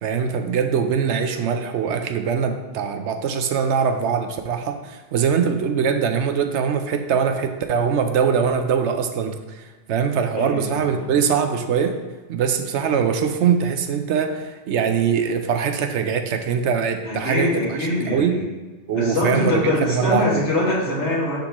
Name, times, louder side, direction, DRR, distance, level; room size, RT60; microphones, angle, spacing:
voice 1, 0.0-9.6 9.9-12.0 12.3-17.8 18.0-18.4 18.9-20.3, right 7 dB, 75° right, 6 dB, 0.9 m, -22 dB
voice 2, 10.3-11.2 17.0-18.4 18.9-21.4, left 1 dB, 70° left, -5 dB, 2.1 m, -23 dB
10.5 x 3.7 x 3.0 m, 1.3 s
omnidirectional pair, 1.2 m